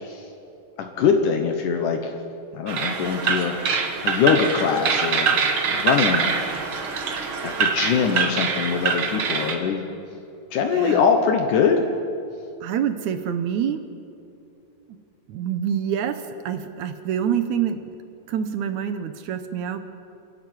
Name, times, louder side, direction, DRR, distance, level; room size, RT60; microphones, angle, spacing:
voice 1, 0.8-2.1 2.5-3.5 4.0-5.4 5.7-6.3 7.4-9.8 10.5-11.9, left 6 dB, 70° left, 4 dB, 2.5 m, -22 dB
sound 1, 2.7-9.6, right 5 dB, 50° right, 1.7 m, -24 dB
voice 2, 12.6-13.8 15.3-17.9 18.3-19.8, right 8 dB, 70° right, 9 dB, 2.0 m, -26 dB
26.5 x 11.0 x 9.4 m, 2.7 s
omnidirectional pair, 4.0 m